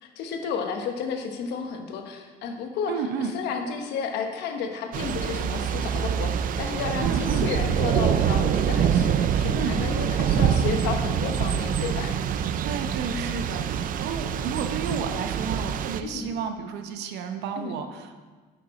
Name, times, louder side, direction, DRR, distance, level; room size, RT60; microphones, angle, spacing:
voice 1, 0.0-2.9 3.2-12.2 13.1-13.4 14.9-15.1 16.0-16.3 17.6-17.7, left 6 dB, 85° left, 4 dB, 1.1 m, -32 dB
voice 2, 2.9-3.3 7.0-7.5 9.5-9.8 12.6-18.2, right 6 dB, 85° right, 7 dB, 0.8 m, -32 dB
Thunder / Rain, 4.9-16.0, right 8 dB, 55° right, 0.5 m, -25 dB
9.2 x 6.7 x 4.2 m, 1.4 s
cardioid pair, 110°, 17 cm